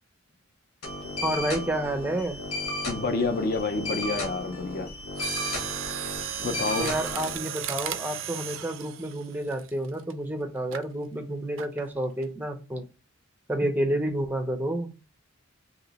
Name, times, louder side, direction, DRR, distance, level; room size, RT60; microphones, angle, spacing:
sound 1, 0.8-7.4, left 2 dB, 85° left, 1.1 m, -34 dB
voice 1, 1.2-2.4 6.8-12.8 13.5-14.9, right 1 dB, 10° right, 0.5 m, -29 dB
voice 2, 2.8-4.9 6.4-6.9, left 3 dB, 45° left, 0.5 m, -28 dB
Mechanisms, 5.1-10.1 10.7-10.9 11.6-11.9 12.2-12.3, right 10 dB, 65° right, 0.4 m, -35 dB
2.9 x 2.9 x 4.0 m
head